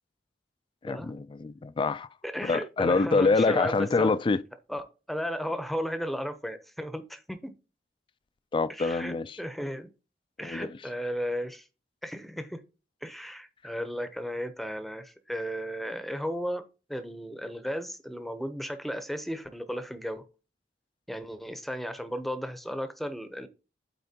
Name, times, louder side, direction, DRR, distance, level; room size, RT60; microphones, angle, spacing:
voice 1, 0.8-2.1 2.4-4.4 8.5-9.4 10.4-10.7, left 3 dB, 30° left, 0.3 m, -26 dB
voice 2, 2.2-4.1 4.7-7.5 8.7-9.9 10.4-11.6 12.0-12.6 13.0-20.2 21.1-23.5, equal, ahead, 0.7 m, -35 dB
11.5 x 4.3 x 2.8 m
head